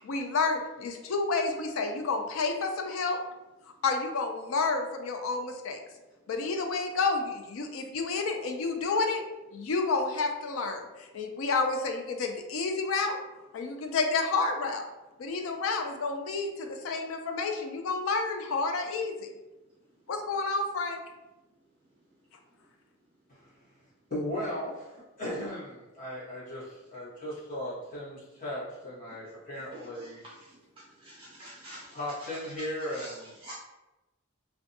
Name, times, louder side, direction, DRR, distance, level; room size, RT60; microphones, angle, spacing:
voice 1, 0.0-3.2 3.8-5.8 6.3-9.2 9.5-13.2 13.5-14.8 15.2-19.3 20.1-21.0, left 4 dB, 65° left, 4 dB, 0.4 m, -30 dB
voice 2, 24.1-30.2 31.9-33.3, left 1 dB, 40° left, -8 dB, 1.1 m, -37 dB
voice 3, 29.7-30.1 31.0-32.0 32.9-33.1 33.4-33.6, right 1 dB, 25° right, -6 dB, 0.4 m, -46 dB
2.5 x 2.2 x 2.6 m, 1.1 s
head